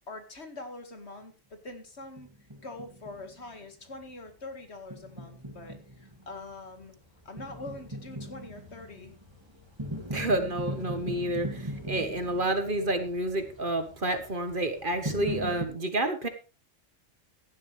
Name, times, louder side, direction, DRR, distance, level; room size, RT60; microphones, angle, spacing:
voice 1, 0.1-2.3 2.6-6.9 7.3-9.1, left 2 dB, 55° left, 6 dB, 2.2 m, -44 dB
sound 1, 2.2-3.6 4.0-4.1 4.9-15.6, equal, 20° right, 2.2 m, -40 dB
voice 2, 10.1-16.3, right 1 dB, 40° right, 8 dB, 1.5 m, -29 dB
15.0 x 11.0 x 3.3 m, 0.32 s
omnidirectional pair, 1.3 m